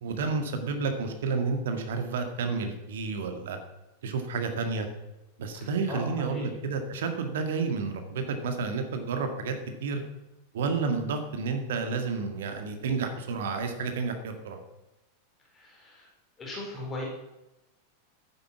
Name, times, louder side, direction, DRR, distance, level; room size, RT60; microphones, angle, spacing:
voice 1, 0.0-3.6 4.0-4.9 5.4-9.6 9.8-10.0 10.5-14.6, right 4 dB, 60° right, 6 dB, 1.9 m, -30 dB
voice 2, 5.5-6.6 15.5-16.1 16.4-17.0, left 2 dB, 20° left, -2 dB, 4.3 m, -39 dB
12.0 x 9.5 x 6.0 m, 0.98 s
figure-of-eight pair, 90°, 0 cm